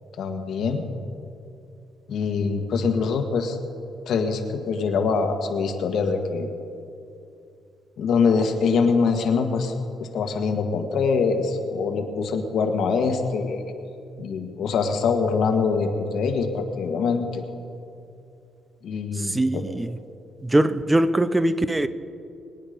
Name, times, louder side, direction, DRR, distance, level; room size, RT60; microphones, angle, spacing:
voice 1, 0.2-0.8 2.1-3.6 4.1-6.6 8.0-9.7 10.0-13.7 14.2-17.5 18.8-19.6, left 5 dB, 70° left, 1.6 m, -24 dB
voice 2, 19.1-20.0 20.4-21.9, right 1 dB, 15° right, 0.7 m, -22 dB
23.0 x 9.4 x 5.2 m
cardioid pair, 90°, 0 cm